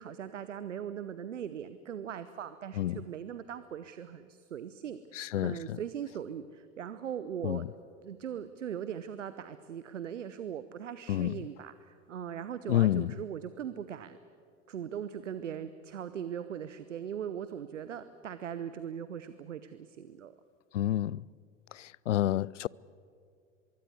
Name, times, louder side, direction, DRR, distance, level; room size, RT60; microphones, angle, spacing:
voice 1, 0.0-7.6 8.0-14.2 14.7-20.3, right 9 dB, 75° right, 1.0 m, -40 dB
voice 2, 5.1-5.8 7.4-7.7 11.1-11.4 12.7-13.1 20.7-21.3 21.7-22.7, left 13 dB, 75° left, 0.5 m, -29 dB
23.5 x 23.5 x 8.1 m
figure-of-eight pair, 85°, 37 cm